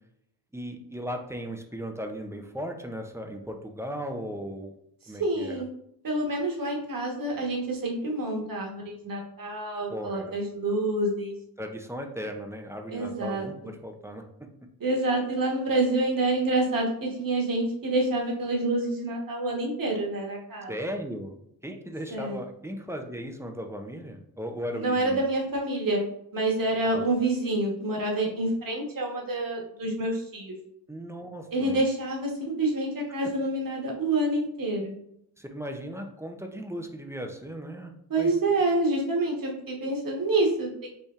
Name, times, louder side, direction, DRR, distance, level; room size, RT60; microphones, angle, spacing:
voice 1, 0.5-4.7 5.1-5.6 9.9-10.4 11.6-14.2 20.7-21.4 21.6-25.2 26.9-27.0 30.9-31.8 35.4-38.3, equal, 5° right, 3 dB, 0.5 m, -37 dB
voice 2, 5.2-5.7 6.0-11.3 12.9-13.5 14.8-20.7 22.1-22.4 24.7-26.0 26.3-30.5 31.5-35.0 38.1-40.9, right 2 dB, 50° right, 0 dB, 1.2 m, -27 dB
5.3 x 3.2 x 2.4 m, 0.74 s
wide cardioid pair, 115°, 43 cm